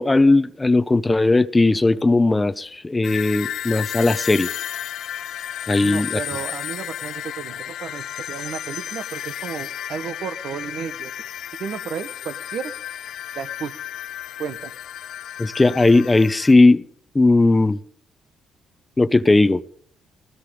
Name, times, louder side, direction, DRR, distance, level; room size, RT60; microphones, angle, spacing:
voice 1, 0.0-4.5 5.7-6.2 15.4-16.8 17.1-17.8 19.0-19.6, left 2 dB, 20° left, 0.8 m, -17 dB
sound 1, 3.0-16.5, left 11 dB, 75° left, 0.8 m, -33 dB
voice 2, 5.8-11.1 11.6-12.7 13.3-13.7 14.4-14.7, right 7 dB, 70° right, 1.5 m, -33 dB
19.5 x 18.5 x 3.8 m
cardioid pair, 90°, 0 cm